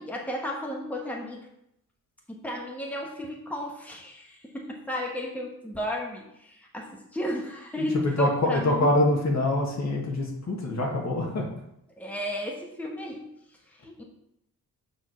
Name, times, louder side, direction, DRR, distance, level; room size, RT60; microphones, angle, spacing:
voice 1, 0.0-1.4 2.3-8.9 12.0-13.3 13.7-14.0, equal, 5° left, -1 dB, 1.3 m, -33 dB
voice 2, 7.8-11.5, left 1 dB, 50° left, 0 dB, 1.8 m, -25 dB
6.6 x 3.8 x 6.2 m, 0.77 s
cardioid pair, 90°, 36 cm